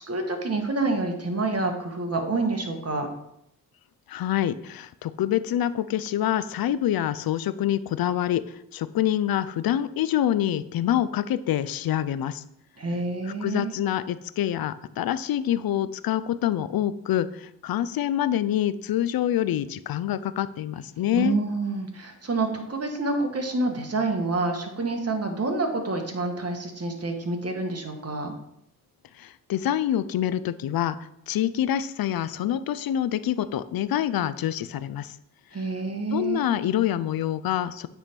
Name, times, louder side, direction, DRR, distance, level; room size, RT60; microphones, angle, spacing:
voice 1, 0.1-3.1 12.8-13.7 21.1-28.3 35.5-36.5, right 3 dB, 40° right, 4 dB, 1.4 m, -28 dB
voice 2, 4.1-12.4 13.3-21.4 29.2-31.0 31.3-35.2 36.1-37.9, left 11 dB, 65° left, 15 dB, 0.5 m, -26 dB
8.7 x 3.5 x 4.4 m, 0.78 s
cardioid pair, 60°, 38 cm